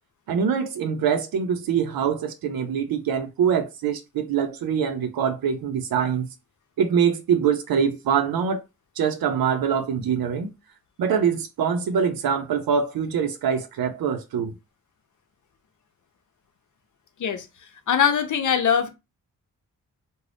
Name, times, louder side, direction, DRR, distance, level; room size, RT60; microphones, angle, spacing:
voice 1, 0.3-6.3 6.8-8.6 9.0-10.5 11.0-14.5, right 7 dB, 85° right, 0.6 m, -24 dB
voice 2, 17.9-18.9, left 8 dB, 60° left, 0.7 m, -21 dB
2.5 x 2.1 x 3.3 m
cardioid pair, 65°, 34 cm